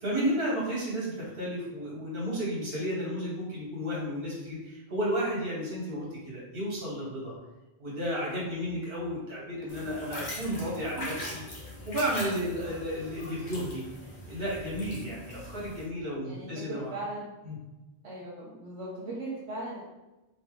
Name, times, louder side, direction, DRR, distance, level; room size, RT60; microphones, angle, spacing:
voice 1, 0.0-7.3 7.8-11.4 11.8-13.8 14.3-16.9 17.4-17.6, equal, 60° right, -4 dB, 1.3 m, -32 dB
sound 1, 9.7-15.8, left 1 dB, 45° left, 0.9 m, -41 dB
voice 2, 16.2-17.3 18.0-19.8, right 2 dB, 80° right, -7 dB, 1.1 m, -38 dB
2.8 x 2.7 x 3.5 m, 1.0 s
omnidirectional pair, 1.1 m